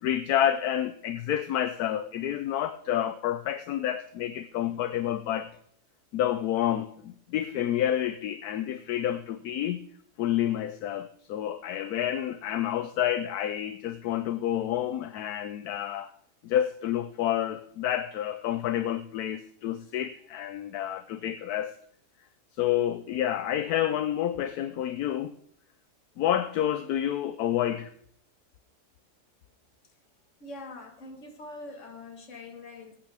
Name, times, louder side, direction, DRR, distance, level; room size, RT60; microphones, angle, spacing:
voice 1, 0.0-5.5 6.1-9.8 10.2-16.1 16.4-21.8 22.6-25.3 26.2-27.9, left 11 dB, 75° left, 1.1 m, -29 dB
voice 2, 30.4-33.0, left 2 dB, 50° left, 2.0 m, -43 dB
21.5 x 9.0 x 3.5 m
omnidirectional pair, 1.7 m